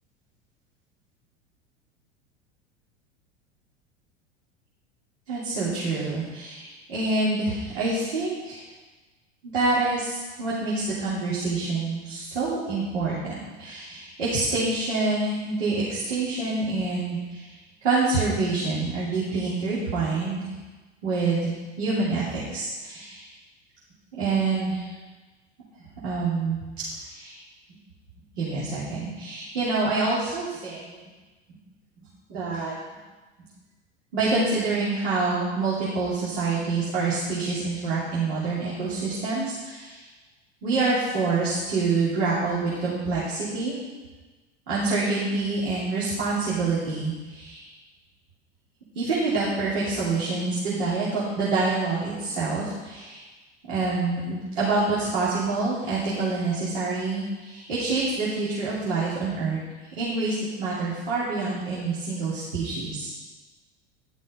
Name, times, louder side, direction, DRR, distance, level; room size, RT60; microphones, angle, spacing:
voice 1, 5.3-8.6 9.5-17.5 17.8-20.4 21.0-21.5 21.8-23.3 24.1-24.8 26.0-26.6 27.0-27.4 28.4-31.0 32.3-32.7 34.1-40.0 40.6-43.8 44.7-47.7 48.9-53.2 53.7-59.6 60.0-63.1, right 3 dB, 65° right, -9 dB, 3.0 m, -26 dB
11.5 x 6.2 x 5.3 m, 1.3 s
figure-of-eight pair, 80°, 35 cm